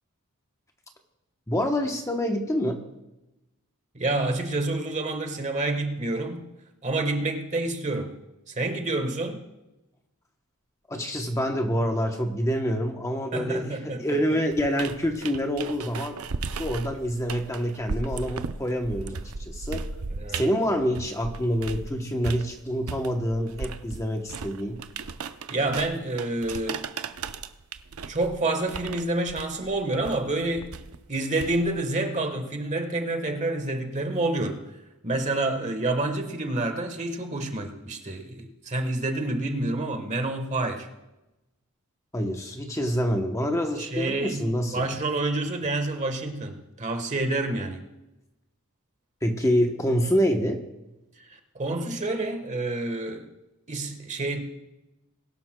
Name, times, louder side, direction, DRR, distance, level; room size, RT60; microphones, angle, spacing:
voice 1, 1.5-2.8 10.9-16.2 16.6-19.9 20.3-24.8 42.1-44.9 49.2-50.6, equal, 15° left, 0.9 m, -26 dB
voice 2, 3.9-6.5 6.8-8.1 8.5-9.4 13.3-14.1 20.2-20.5 25.5-26.9 28.1-30.7 31.1-34.6 35.0-40.9 43.7-47.9 51.2-53.3 53.7-54.4, right 2 dB, 35° right, 1.3 m, -28 dB
sound 1, 14.5-21.9 22.2-31.9, right 4 dB, 75° right, 0.6 m, -36 dB
21.0 x 12.0 x 2.2 m
head